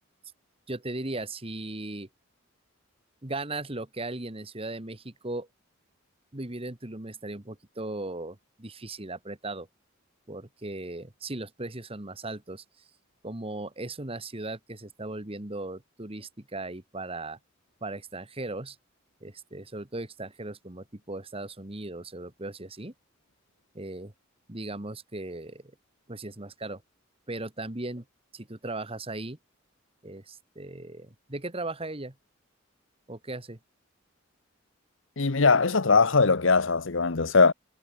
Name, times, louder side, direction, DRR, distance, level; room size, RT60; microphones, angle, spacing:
voice 1, 0.7-2.1 3.2-5.5 6.3-9.7 10.3-12.6 13.2-17.4 17.8-18.8 19.2-22.9 23.7-24.1 24.5-25.6 26.1-26.8 27.3-28.0 28.3-29.4 30.0-32.1 33.1-33.6, right 2 dB, 30° right, 1.8 m, -37 dB
voice 2, 35.2-37.5, left 4 dB, 65° left, 1.1 m, -21 dB
head